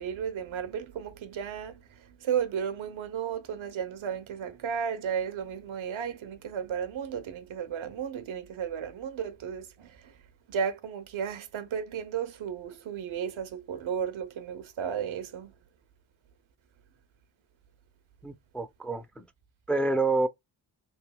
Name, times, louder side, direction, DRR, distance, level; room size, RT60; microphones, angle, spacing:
voice 1, 0.0-10.1 10.5-15.5, right 7 dB, 80° right, 0.8 m, -34 dB
voice 2, 18.2-19.3 19.7-20.3, right 3 dB, 5° left, 0.4 m, -28 dB
3.3 x 2.6 x 2.2 m
cardioid pair, 65°, 47 cm